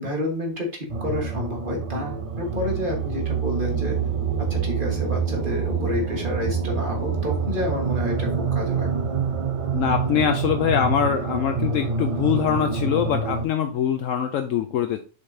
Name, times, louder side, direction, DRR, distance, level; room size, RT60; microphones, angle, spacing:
voice 1, 0.0-4.0 4.4-8.9, left 1 dB, 40° right, 1 dB, 1.6 m, -29 dB
sound 1, 0.9-13.5, right 5 dB, 55° right, 0.3 m, -26 dB
voice 2, 9.7-15.0, left 8 dB, 70° left, 7 dB, 0.9 m, -23 dB
6.6 x 5.2 x 2.7 m, 0.35 s
omnidirectional pair, 1.5 m